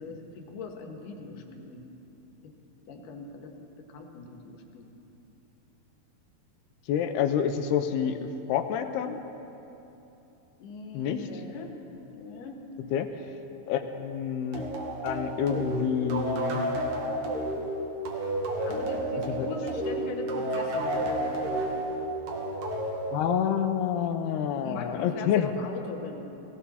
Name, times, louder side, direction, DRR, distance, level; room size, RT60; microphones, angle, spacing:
voice 1, 0.0-1.8 2.4-2.5 2.9-4.9 10.6-11.8 12.1-12.6 18.6-21.3 24.6-26.2, left 3 dB, 65° left, 3 dB, 2.7 m, -40 dB
voice 2, 6.9-9.2 10.9-11.3 12.9-13.1 13.7-14.7 15.0-16.6 19.4-19.5 23.1-25.5, left 8 dB, 90° left, 7 dB, 2.8 m, -28 dB
sound 1, 14.5-23.8, right 1 dB, 50° right, 2.4 m, -31 dB
18.5 x 18.0 x 4.2 m, 3.0 s
omnidirectional pair, 4.5 m